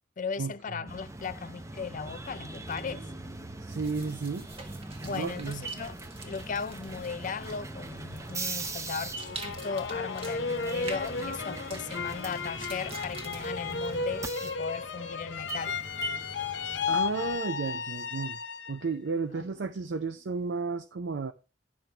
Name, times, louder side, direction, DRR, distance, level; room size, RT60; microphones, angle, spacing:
voice 1, 0.2-3.1 5.0-15.8 19.4-19.5, left 5 dB, 45° left, 0.4 m, -37 dB
sound 1, 0.9-17.4, right 2 dB, 15° right, 0.6 m, -41 dB
voice 2, 3.6-4.5 5.1-5.7 16.9-18.4 18.7-21.3, right 4 dB, 85° right, 0.5 m, -33 dB
sound 2, 3.7-14.9, right 3 dB, 35° right, 1.2 m, -48 dB
sound 3, 9.1-18.9 19.3-20.0, left 5 dB, 85° left, 0.8 m, -34 dB
10.5 x 5.9 x 3.3 m
head